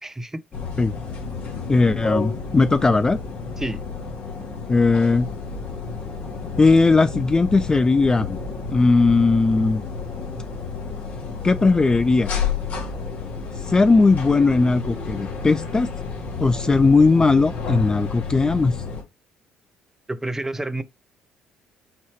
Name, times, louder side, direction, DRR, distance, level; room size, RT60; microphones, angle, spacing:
voice 1, 0.0-0.4 3.6-3.9 20.1-20.8, right 2 dB, 15° right, 0.8 m, -29 dB
sound 1, 0.5-19.0, left 5 dB, 60° left, 1.8 m, -31 dB
voice 2, 1.7-3.2 4.7-5.3 6.6-8.4 8.7-9.8 11.4-12.3 13.6-15.9 16.4-18.8, left 3 dB, 20° left, 0.3 m, -18 dB
5.7 x 3.1 x 2.9 m
hypercardioid pair, 50°, 3 cm